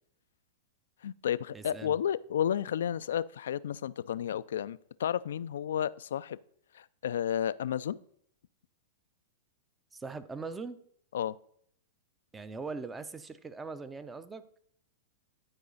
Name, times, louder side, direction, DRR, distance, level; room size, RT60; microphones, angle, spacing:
voice 1, 1.0-6.4 6.7-8.0 11.1-11.4, left 9 dB, 75° left, 16 dB, 0.3 m, -32 dB
voice 2, 1.5-2.0 9.9-10.8 12.3-14.4, right 4 dB, 15° right, 13 dB, 0.6 m, -41 dB
11.5 x 4.8 x 4.0 m, 0.66 s
hypercardioid pair, 110°, 0 cm